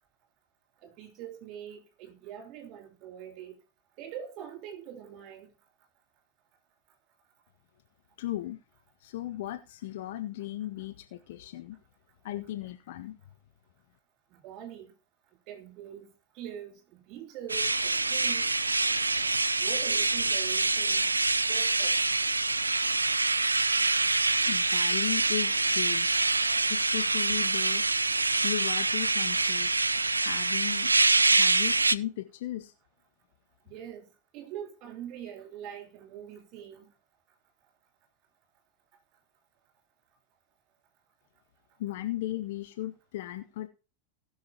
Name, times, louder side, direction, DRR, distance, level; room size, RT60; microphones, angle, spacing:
voice 1, 0.8-3.6 4.0-5.5 14.4-14.9 15.5-16.1 16.4-16.8 17.1-18.5 19.6-21.0 21.5-22.0 33.7-34.0 34.3-36.9, right 9 dB, 40° right, 3.7 m, -43 dB
voice 2, 8.2-8.6 9.0-11.8 12.2-13.2 24.5-26.2 26.7-27.8 28.4-29.7 30.2-31.0 31.3-32.7 41.8-43.7, left 14 dB, 55° left, 0.7 m, -36 dB
sound 1, 17.5-32.0, right 3 dB, 80° right, 0.4 m, -25 dB
19.0 x 6.4 x 2.9 m
figure-of-eight pair, 90°, 0 cm